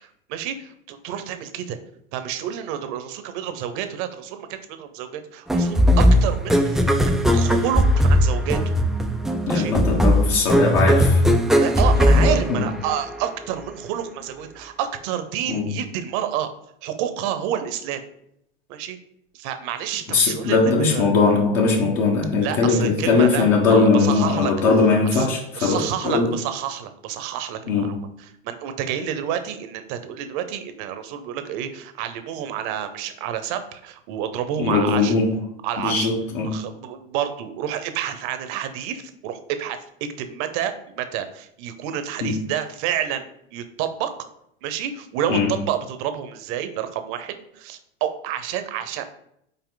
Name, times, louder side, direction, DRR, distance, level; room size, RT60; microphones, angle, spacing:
voice 1, 0.0-1.8 2.1-8.6 9.5-9.7 11.6-16.5 16.8-18.0 18.7-19.0 19.3-21.1 22.4-24.5 25.1-25.3 25.6-28.0 28.4-35.1 35.6-36.1 36.4-44.3 44.6-49.0, right 10 dB, 60° right, 0.9 m, -29 dB
sound 1, 5.5-13.1, equal, ahead, 0.3 m, -18 dB
voice 2, 9.5-11.2 11.9-12.7 15.5-15.8 20.1-26.4 27.7-28.1 34.6-35.4 35.8-36.6 42.2-42.4 45.3-45.6, left 4 dB, 55° left, 1.3 m, -20 dB
5.7 x 4.2 x 3.9 m
hypercardioid pair, 110°, 30 cm